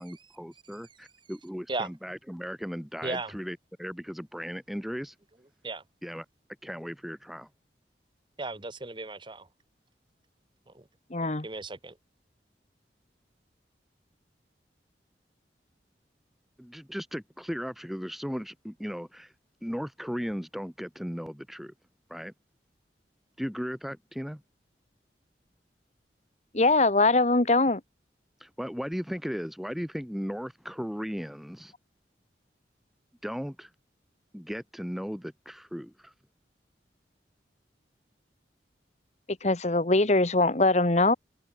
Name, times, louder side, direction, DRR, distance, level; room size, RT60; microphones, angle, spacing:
voice 1, 0.0-5.1 6.0-6.2 6.6-7.5 16.6-19.3 19.6-21.7 22.1-22.3 23.4-24.4 28.4-31.7 33.2-33.7 34.3-36.1, equal, ahead, 1.2 m, -36 dB
voice 2, 3.0-3.3 5.6-5.8 8.4-9.5 10.7-10.8 11.4-12.0, right 3 dB, 25° right, 1.1 m, -35 dB
voice 3, 11.1-11.5 26.5-27.8 39.4-41.1, left 2 dB, 40° left, 1.3 m, -22 dB
head